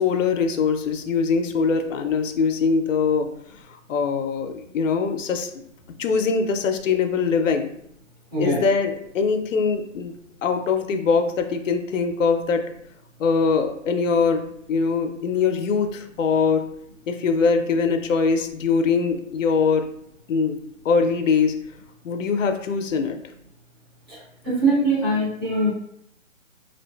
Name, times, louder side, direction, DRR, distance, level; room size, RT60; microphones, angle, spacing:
voice 1, 0.0-3.3 3.9-5.6 6.0-7.7 8.4-10.1 10.4-12.6 13.2-14.4 14.7-16.7 17.1-19.9 20.3-20.6 20.8-21.6 22.0-23.2, left 5 dB, 70° left, 7 dB, 0.5 m, -22 dB
voice 2, 24.4-25.7, right 2 dB, 20° right, -9 dB, 0.6 m, -22 dB
2.5 x 2.5 x 2.2 m, 0.73 s
hypercardioid pair, 160°, 40 cm